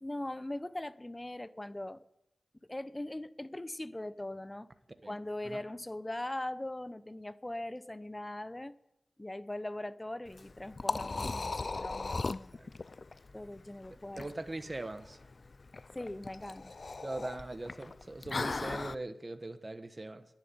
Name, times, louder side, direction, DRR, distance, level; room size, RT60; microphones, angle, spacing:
voice 1, 0.0-2.0 2.7-4.7 5.1-8.7 9.2-12.5 13.3-14.3 15.9-16.7, left 1 dB, 25° left, 15 dB, 0.9 m, -40 dB
Liquid, 10.3-18.9, left 3 dB, 55° left, 0.4 m, -38 dB
voice 2, 12.2-12.7 14.2-15.2 17.0-20.3, right 2 dB, 35° right, 9 dB, 1.3 m, -41 dB
11.0 x 10.5 x 9.6 m, 0.84 s
cardioid pair, 45°, 0 cm